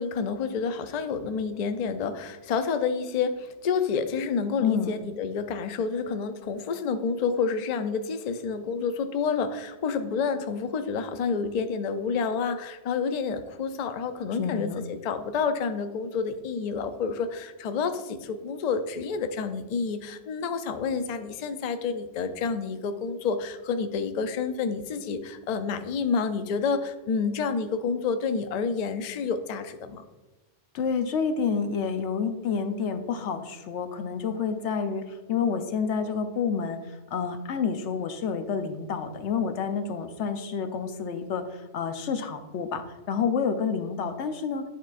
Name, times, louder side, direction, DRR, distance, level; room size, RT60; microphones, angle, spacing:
voice 1, 0.0-30.0, left 5 dB, 55° left, 8 dB, 0.5 m, -29 dB
voice 2, 4.6-4.9 14.4-14.8 30.7-44.6, left 6 dB, 90° left, 8 dB, 0.9 m, -29 dB
10.0 x 4.6 x 2.4 m, 1.2 s
omnidirectional pair, 1.2 m